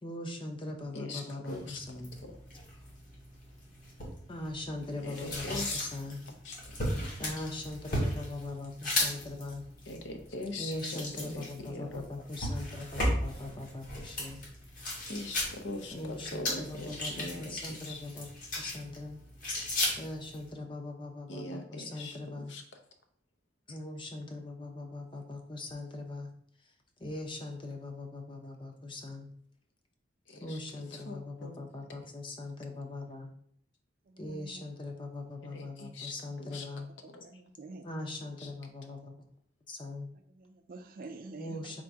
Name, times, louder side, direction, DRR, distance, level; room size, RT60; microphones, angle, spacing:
voice 1, 0.0-2.1 4.3-6.2 7.2-9.6 10.6-14.4 15.9-18.3 18.6-19.2 20.0-22.5 23.7-26.3 27.0-29.3 30.4-33.3 34.2-36.9 37.8-39.1 39.7-40.1 41.4-41.8, left 2 dB, 25° left, 3 dB, 0.6 m, -41 dB
voice 2, 0.9-1.8 2.2-2.3 5.0-5.9 6.4-6.6 9.8-12.0 12.4-12.5 15.1-16.9 17.2-18.0 21.3-22.6 30.3-31.6 35.4-36.7 37.1-37.4 38.4-38.5, left 2 dB, 70° left, 5 dB, 0.6 m, -42 dB
sound 1, 1.5-20.5, left 1 dB, 50° left, 1.3 m, -37 dB
voice 3, 34.1-34.6 37.2-37.9 40.3-41.6, right 3 dB, 50° right, 7 dB, 0.4 m, -47 dB
3.7 x 2.5 x 4.6 m, 0.63 s
head